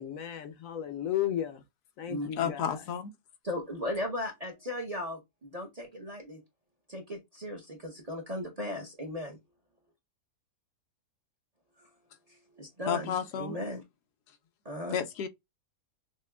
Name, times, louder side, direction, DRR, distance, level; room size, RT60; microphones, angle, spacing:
voice 1, 0.0-1.6 2.0-2.8, left 11 dB, 65° left, 1.0 m, -34 dB
voice 2, 2.4-3.1 12.9-13.5 14.9-15.3, left 8 dB, 85° left, 1.3 m, -31 dB
voice 3, 3.4-6.4 6.9-9.4 11.8-11.9 12.3-13.8 14.6-15.0, left 1 dB, 30° right, 0.8 m, -37 dB
6.1 x 2.2 x 2.2 m
omnidirectional pair, 1.7 m